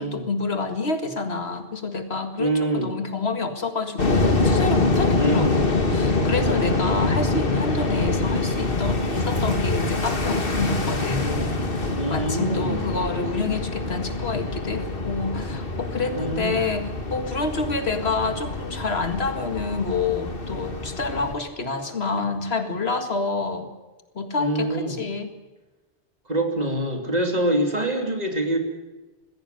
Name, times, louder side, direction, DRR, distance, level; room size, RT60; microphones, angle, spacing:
voice 1, 0.0-23.7 24.2-25.3, left 3 dB, 80° left, 7 dB, 2.2 m, -28 dB
voice 2, 2.4-2.9 5.1-5.5 12.0-12.8 16.1-16.7 24.4-25.0 26.3-28.6, right 1 dB, 40° right, 4 dB, 3.1 m, -25 dB
sound 1, 4.0-21.3, left 3 dB, 60° left, 2.1 m, -25 dB
Scratching (performance technique), 5.5-5.6 5.9-6.3 7.0-7.6 8.0-8.4 8.7-8.9 9.1-9.6 10.3-10.8 11.2-11.6, left 1 dB, 30° left, 7.6 m, -33 dB
20.0 x 16.0 x 9.3 m, 1.2 s
omnidirectional pair, 1.0 m